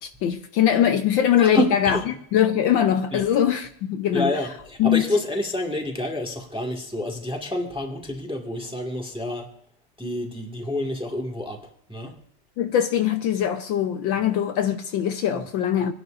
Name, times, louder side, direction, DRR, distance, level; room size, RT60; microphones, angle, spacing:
voice 1, 0.0-4.3 4.8-5.0 12.6-15.9, left 10 dB, 70° left, 1.4 m, -22 dB
voice 2, 1.4-2.0 3.1-3.2 4.1-9.5 10.0-11.6 11.9-12.1 15.3-15.4, left 1 dB, 5° right, 1.4 m, -28 dB
26.5 x 11.0 x 2.5 m
omnidirectional pair, 2.3 m